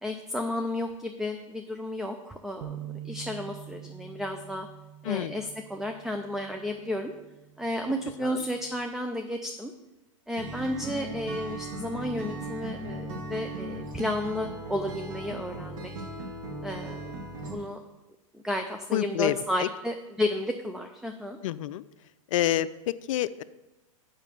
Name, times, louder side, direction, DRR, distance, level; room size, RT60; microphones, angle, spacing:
voice 1, 0.0-2.8 3.0-4.7 5.0-7.1 7.6-9.7 10.3-15.9 16.6-17.1 17.5-17.8 18.3-21.4, left 1 dB, ahead, 5 dB, 0.4 m, -32 dB
sound 1, 2.6-8.9, right 11 dB, 50° right, 0.9 m, -46 dB
voice 2, 5.0-5.4 8.2-8.4 18.9-19.7 21.4-21.8 22.3-23.4, left 13 dB, 65° left, 14 dB, 0.5 m, -28 dB
Acoustic guitar, 10.4-17.5, right 1 dB, 70° right, 2.0 m, -37 dB
7.2 x 5.7 x 6.8 m, 1.0 s
hypercardioid pair, 120°, 18 cm